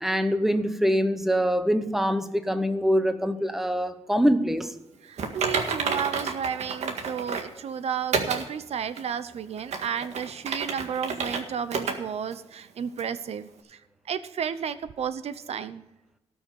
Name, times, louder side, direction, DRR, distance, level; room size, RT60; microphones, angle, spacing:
voice 1, 0.0-4.7, equal, 5° right, 9 dB, 0.9 m, -24 dB
voice 2, 5.0-13.4 13.7-13.8 14.1-15.8, right 8 dB, 70° right, 13 dB, 0.7 m, -32 dB
Typing, 5.2-7.5 8.1-8.5 9.0-9.1 9.6-11.4 11.7-12.0 12.3-12.4 13.0-13.1, right 5 dB, 85° right, 1.8 m, -29 dB
18.0 x 6.3 x 5.3 m, 0.94 s
wide cardioid pair, 140°, 11 cm